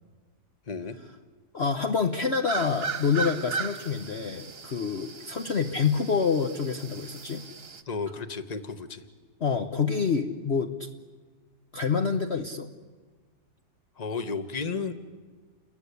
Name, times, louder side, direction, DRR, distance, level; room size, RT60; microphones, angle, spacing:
voice 1, 0.7-1.0 7.9-9.0 14.0-14.9, left 4 dB, 25° left, 10 dB, 1.4 m, -33 dB
voice 2, 1.5-7.4 9.4-10.9 11.7-12.7, left 5 dB, 45° left, 5 dB, 1.3 m, -27 dB
sound 1, 2.5-7.8, right 5 dB, 40° right, 1.4 m, -37 dB
29.5 x 22.0 x 8.5 m, 1.4 s
omnidirectional pair, 1.8 m